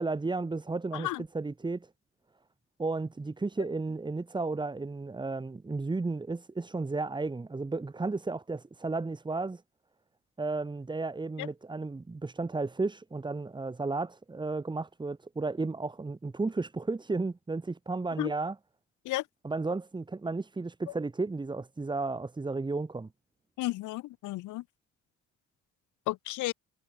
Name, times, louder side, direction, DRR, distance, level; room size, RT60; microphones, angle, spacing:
voice 1, 0.0-1.9 2.8-9.6 10.4-18.6 19.4-23.1, right 3 dB, 15° right, 0.9 m, -33 dB
voice 2, 23.6-24.6 26.1-26.5, left 18 dB, 80° left, 0.6 m, -33 dB
cardioid pair, 90°, 30 cm